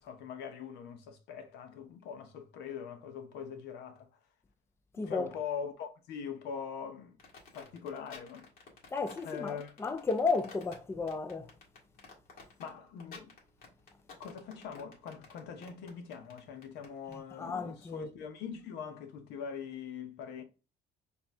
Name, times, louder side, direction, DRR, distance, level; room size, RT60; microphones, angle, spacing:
voice 1, 0.0-4.1 5.0-7.2 7.5-8.5 9.2-9.7 12.6-13.3 14.2-20.4, left 7 dB, 85° left, 0.9 m, -42 dB
voice 2, 5.0-5.3 8.9-11.5 17.4-18.1, left 4 dB, 15° left, 0.4 m, -33 dB
sound 1, 7.2-17.2, left 4 dB, 60° left, 1.9 m, -53 dB
4.5 x 2.8 x 3.4 m
cardioid pair, 110°, 17 cm